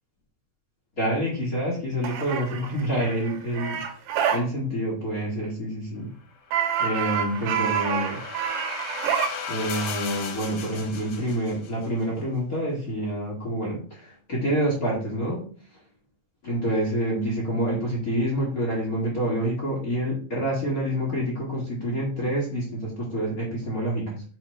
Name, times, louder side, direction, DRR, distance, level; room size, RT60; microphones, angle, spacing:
voice 1, 1.0-3.8 4.3-6.1 6.8-8.2 9.5-15.5 16.4-24.2, right 1 dB, 55° left, -5 dB, 0.9 m, -27 dB
sound 1, 2.0-4.4 6.5-9.3, right 8 dB, 85° right, 3.1 m, -27 dB
sound 2, 6.6-11.9, left 6 dB, 90° left, 3.3 m, -37 dB
8.7 x 2.9 x 4.4 m, 0.43 s
omnidirectional pair, 4.7 m